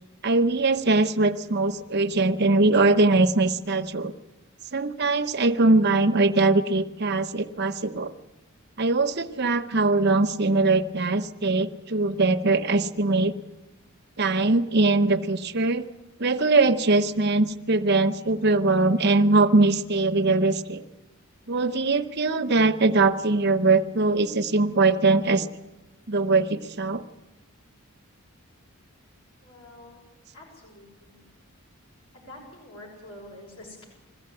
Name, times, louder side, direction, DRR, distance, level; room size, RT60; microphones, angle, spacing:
voice 1, 0.2-4.1 4.7-8.1 8.8-13.3 14.2-15.8 16.2-20.8 21.5-25.5 26.1-27.0, right 3 dB, 50° right, 8 dB, 0.9 m, -21 dB
voice 2, 29.4-30.0 30.3-31.2 32.1-33.9, left 1 dB, 80° left, -2 dB, 6.5 m, -46 dB
21.5 x 15.5 x 9.7 m, 1.1 s
head